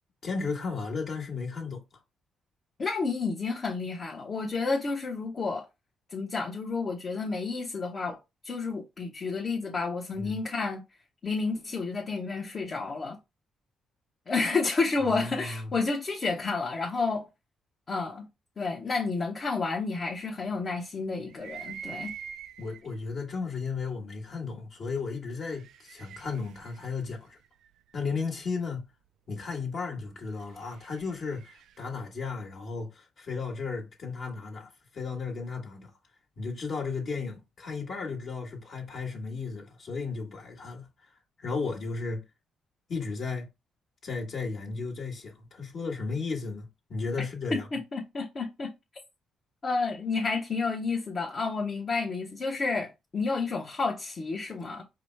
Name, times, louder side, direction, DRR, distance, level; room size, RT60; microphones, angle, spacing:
voice 1, 0.2-1.8 10.2-10.4 15.0-15.7 22.6-27.4 27.9-28.9 29.3-35.9 36.4-40.9 41.4-42.2 42.9-43.5 44.0-47.7, left 4 dB, 55° left, 1.5 m, -34 dB
voice 2, 2.8-5.7 6.1-8.2 8.4-10.8 11.2-13.2 14.3-17.3 17.9-18.3 18.6-22.1 47.5-48.7 49.6-54.8, left 4 dB, 40° left, 0.9 m, -30 dB
sound 1, 21.3-23.0 23.8-23.9 25.2-28.1 30.2-31.9, right 8 dB, 75° right, 0.3 m, -45 dB
4.9 x 2.1 x 4.5 m
cardioid pair, 90°, 0 cm